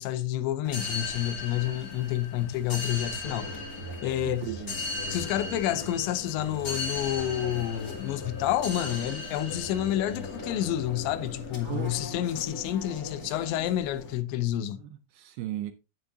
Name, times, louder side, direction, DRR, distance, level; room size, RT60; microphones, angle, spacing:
voice 1, 0.0-3.6 4.0-4.5 5.1-14.8, left 12 dB, 80° left, 2.9 m, -29 dB
sound 1, 0.6-14.1, left 3 dB, 30° left, 1.9 m, -37 dB
voice 2, 4.3-4.8 11.7-12.0 13.2-13.4 14.8-15.7, right 12 dB, 80° right, 2.5 m, -36 dB
10.5 x 8.9 x 2.7 m
omnidirectional pair, 5.3 m